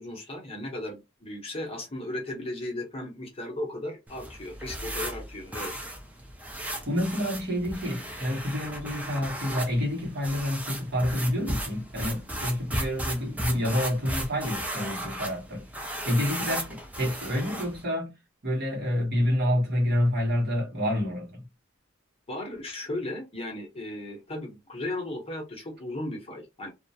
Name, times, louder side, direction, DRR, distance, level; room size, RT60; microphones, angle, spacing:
voice 1, 0.0-5.8 22.3-26.7, left 1 dB, 30° left, 0.8 m, -36 dB
sound 1, 4.1-17.8, right 1 dB, 10° right, 0.4 m, -36 dB
voice 2, 6.8-15.6 16.0-18.1 18.4-21.4, left 1 dB, 55° right, 1.0 m, -28 dB
2.3 x 2.1 x 2.6 m
head